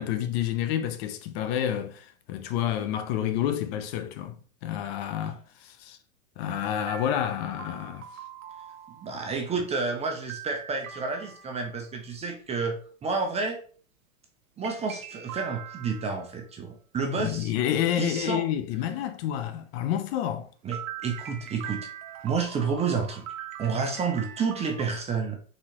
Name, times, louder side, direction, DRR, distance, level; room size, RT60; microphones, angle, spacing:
voice 1, 0.0-6.0 6.4-8.1 17.2-20.5, left 10 dB, 45° left, 0.6 m, -29 dB
sound 1, 6.9-9.3 10.3-11.9 14.6-16.3 20.7-24.8, right 9 dB, 65° right, 0.8 m, -42 dB
voice 2, 9.0-12.8 13.0-13.6 14.6-17.5 18.0-18.4 20.6-21.9 22.2-23.2 23.6-25.4, right 5 dB, 15° right, 0.5 m, -30 dB
4.1 x 3.7 x 2.9 m
hypercardioid pair, 115°, 43 cm